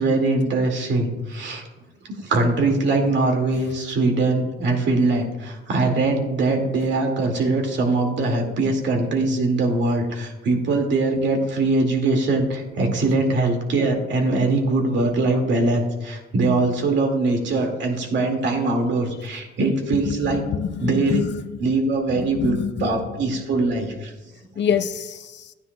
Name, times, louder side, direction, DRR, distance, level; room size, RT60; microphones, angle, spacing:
voice 1, 0.0-1.6 2.1-20.5 20.8-21.2 21.6-24.1, right 2 dB, 65° right, 2.2 m, -22 dB
voice 2, 20.1-21.7 22.1-23.0 24.6-25.5, left 7 dB, 65° left, 0.7 m, -27 dB
13.0 x 9.5 x 2.3 m
cardioid pair, 90°, 20 cm